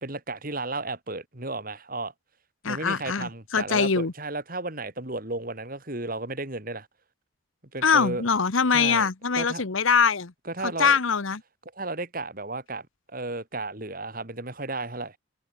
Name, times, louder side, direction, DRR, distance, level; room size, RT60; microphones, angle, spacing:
voice 1, 0.0-2.1 2.7-6.9 7.7-8.3 8.7-9.1 9.3-9.6 10.4-11.0 11.7-15.2, right 2 dB, 45° right, 3.4 m, -33 dB
voice 2, 2.6-4.1 7.8-10.3 10.6-11.4, left 5 dB, 80° left, 1.1 m, -23 dB
head